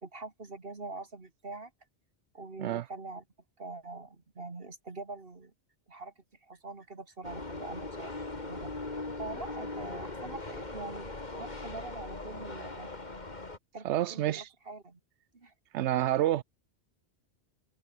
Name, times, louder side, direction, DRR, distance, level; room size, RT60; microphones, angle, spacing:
voice 1, 0.0-1.7 2.3-3.2 3.6-5.5 5.9-8.1 8.4-8.7 9.2-12.9 13.7-15.0 15.3-15.5, right 3 dB, 55° right, 2.3 m, -44 dB
sound 1, 7.2-13.6, left 2 dB, 40° left, 2.6 m, -40 dB
voice 2, 13.8-14.5 15.7-16.4, right 13 dB, 80° right, 0.9 m, -28 dB
omnidirectional pair, 1.2 m